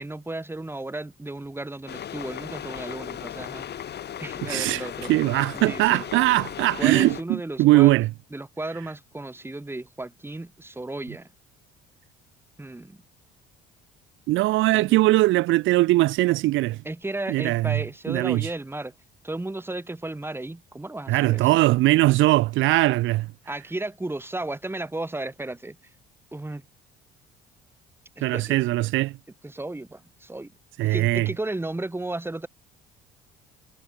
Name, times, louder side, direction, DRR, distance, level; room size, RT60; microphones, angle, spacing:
voice 1, 0.0-3.8 4.2-5.1 5.5-6.0 6.8-7.9 8.3-11.3 12.6-13.0 14.7-15.0 16.8-18.9 19.2-21.5 23.4-25.8 26.3-26.6 28.2-28.6 29.4-30.5 30.8-32.5, right 2 dB, 10° right, 3.1 m, -34 dB
sound 1, 1.9-7.2, left 10 dB, 50° left, 4.6 m, -36 dB
voice 2, 4.5-8.1 14.3-16.8 17.3-17.8 18.1-18.5 21.1-23.3 28.2-29.2 30.8-31.3, right 18 dB, 70° right, 0.6 m, -21 dB
supercardioid pair, 85°, 21 cm